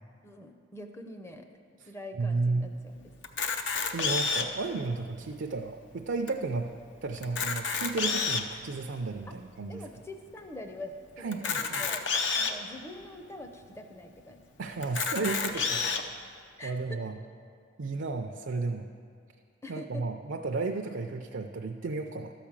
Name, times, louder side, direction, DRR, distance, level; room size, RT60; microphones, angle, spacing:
voice 1, 0.2-1.5 1.9-3.0 9.3-9.4 9.7-12.0 12.4-14.4 15.5-15.6 16.6-17.0 19.6-20.0, left 1 dB, 15° left, 5 dB, 0.6 m, -44 dB
voice 2, 2.1-2.7 3.9-6.7 7.0-9.9 11.2-11.8 14.6-15.9 16.6-17.2 17.8-18.9 19.7-22.3, right 3 dB, 65° right, 3 dB, 0.5 m, -33 dB
Camera, 3.2-4.6 5.3-5.4 5.6-5.7 6.3-6.4 7.2-8.5 9.2-9.3 11.3-12.5 13.3-13.4 13.6-13.7 14.8-16.0, left 5 dB, 65° left, 0.6 m, -29 dB
12.5 x 5.0 x 7.3 m, 2.2 s
head